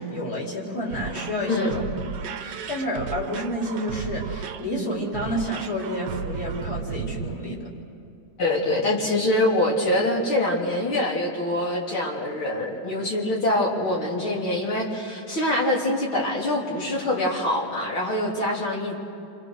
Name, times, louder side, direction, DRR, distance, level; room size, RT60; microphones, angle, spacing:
voice 1, 0.0-1.8 2.2-7.7, equal, 50° left, -3 dB, 5.0 m, -30 dB
sound 1, 0.9-7.3, right 7 dB, 65° right, 1.3 m, -34 dB
voice 2, 8.4-19.0, left 1 dB, 90° left, -3 dB, 4.4 m, -24 dB
29.0 x 26.5 x 6.5 m, 2.7 s
omnidirectional pair, 2.2 m